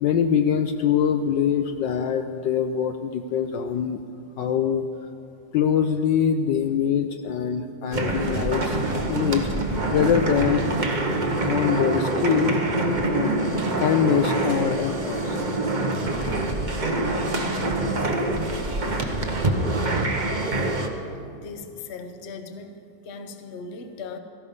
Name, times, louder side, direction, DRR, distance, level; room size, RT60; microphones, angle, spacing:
voice 1, 0.0-4.0 4.4-4.8 5.5-8.8 9.1-9.5 9.9-10.6 11.4-12.6 13.1-13.3 13.8-15.4, left 8 dB, 75° left, 7 dB, 1.2 m, -23 dB
sound 1, 7.9-20.9, right 2 dB, 35° right, 0.7 m, -25 dB
voice 2, 19.8-20.1 21.4-22.7 23.0-24.2, left 4 dB, 45° left, 7 dB, 1.0 m, -38 dB
17.5 x 14.0 x 5.4 m, 2.6 s
omnidirectional pair, 2.2 m